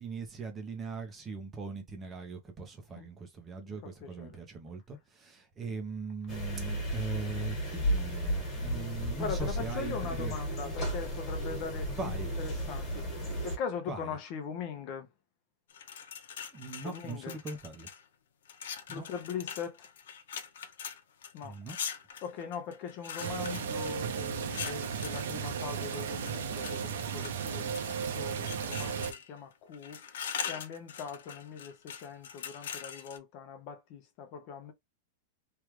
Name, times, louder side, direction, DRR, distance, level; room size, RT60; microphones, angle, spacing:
voice 1, 0.0-10.3 11.9-12.3 13.9-14.2 16.5-17.9 18.9-19.0 21.4-21.8, right 4 dB, 15° right, 0.6 m, -40 dB
voice 2, 3.8-4.4 9.2-12.1 12.4-13.1 13.4-15.1 16.8-17.4 18.9-19.9 21.3-21.6 22.2-30.1 30.4-34.7, left 6 dB, 30° left, 0.6 m, -41 dB
sound 1, 6.3-13.6, equal, 15° left, 1.5 m, -34 dB
sound 2, 15.7-18.0 18.5-25.3 25.9-26.8 27.2-28.0 28.4-29.4 29.7-33.2, left 8 dB, 80° left, 0.6 m, -42 dB
sound 3, 23.2-29.1, right 7 dB, 80° right, 0.9 m, -35 dB
3.2 x 2.4 x 3.0 m
supercardioid pair, 175°, 0 cm